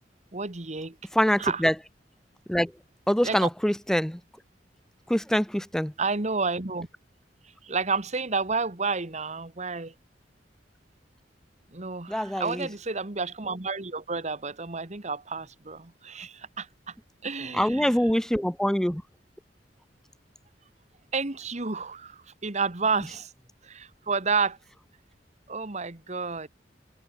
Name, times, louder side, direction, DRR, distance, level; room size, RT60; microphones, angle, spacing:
voice 1, 0.3-0.9 1.4-1.6 3.2-3.5 6.0-6.9 7.6-9.9 11.7-16.9 17.2-18.0 21.1-23.3 23.6-24.6 25.5-26.5, right 4 dB, 40° right, 1.6 m, -30 dB
voice 2, 1.1-1.7 2.5-2.7 3.1-4.2 5.1-5.9 12.1-12.7 17.5-19.0, equal, 5° left, 0.5 m, -24 dB
head